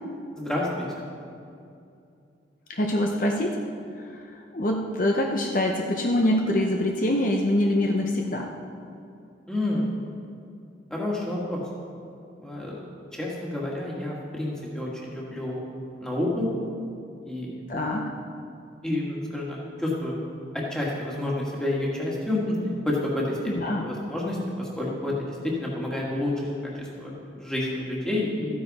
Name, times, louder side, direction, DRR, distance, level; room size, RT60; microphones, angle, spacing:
voice 1, 0.4-0.8 9.5-9.9 10.9-11.6 12.4-12.8 13.1-15.7 16.0-16.5 17.2-17.6 18.8-20.2 20.5-22.6 22.9-23.4 23.8-28.6, left 1 dB, 5° left, -5 dB, 1.8 m, -29 dB
voice 2, 2.7-3.6 4.5-8.5 16.9-17.0 17.7-18.1 23.5-23.9, left 1 dB, 45° left, 1 dB, 0.7 m, -24 dB
14.0 x 9.6 x 4.2 m, 2.5 s
head